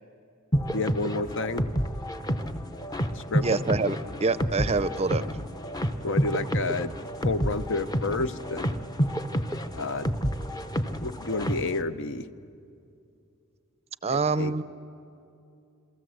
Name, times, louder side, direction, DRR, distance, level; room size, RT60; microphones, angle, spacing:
sound 1, 0.5-11.8, equal, 20° left, 0.7 m, -29 dB
voice 1, 0.7-1.7 3.1-3.5 6.0-6.9 7.2-8.8 9.7-10.1 11.0-12.3 14.1-14.6, left 3 dB, 60° left, 11 dB, 0.8 m, -30 dB
voice 2, 3.4-5.2 14.0-14.6, right 3 dB, 30° right, 15 dB, 0.6 m, -26 dB
28.0 x 23.5 x 7.9 m, 2.6 s
head